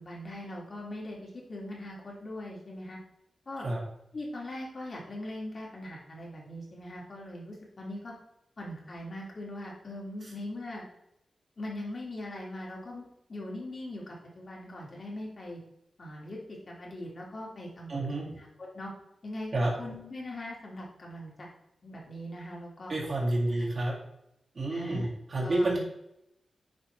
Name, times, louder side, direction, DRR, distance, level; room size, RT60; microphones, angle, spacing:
voice 1, 0.0-3.0 3.5-3.7 4.1-8.1 8.6-10.8 11.6-15.6 16.0-16.4 16.7-18.9 19.2-19.5 19.8-21.5 21.8-22.9 23.5-23.6 24.7-25.1 25.4-25.7, left 1 dB, 45° left, -3 dB, 2.3 m, -41 dB
voice 2, 17.9-18.3 19.5-19.7 22.9-24.0 24.5-25.8, right 1 dB, 45° right, -4 dB, 2.1 m, -29 dB
9.7 x 5.4 x 3.3 m, 0.82 s
wide cardioid pair, 135°, 0 cm